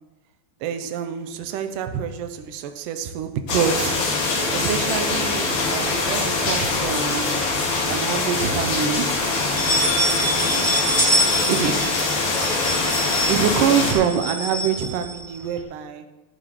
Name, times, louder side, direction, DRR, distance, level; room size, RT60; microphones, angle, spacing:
voice 1, 0.6-7.4 7.9-9.2 11.5-11.9 13.3-16.1, right 8 dB, 75° right, 8 dB, 2.2 m, -26 dB
sound 1, 3.5-13.9, left 3 dB, 75° left, 3.9 m, -23 dB
sound 2, 6.9-7.8 8.2-8.3 8.7-8.8 9.4-15.6, right 1 dB, 20° right, 1.6 m, -26 dB
15.5 x 11.0 x 3.1 m, 1.2 s
omnidirectional pair, 4.2 m